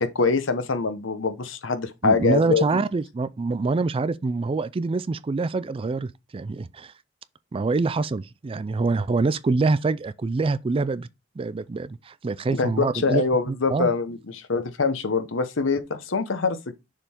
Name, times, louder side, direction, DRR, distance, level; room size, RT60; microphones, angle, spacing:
voice 1, 0.0-2.8 12.5-16.7, left 4 dB, 70° left, 0.9 m, -24 dB
voice 2, 2.0-6.9 7.5-11.1 11.4-13.9, right 3 dB, 30° right, 0.3 m, -25 dB
6.8 x 3.8 x 4.4 m
head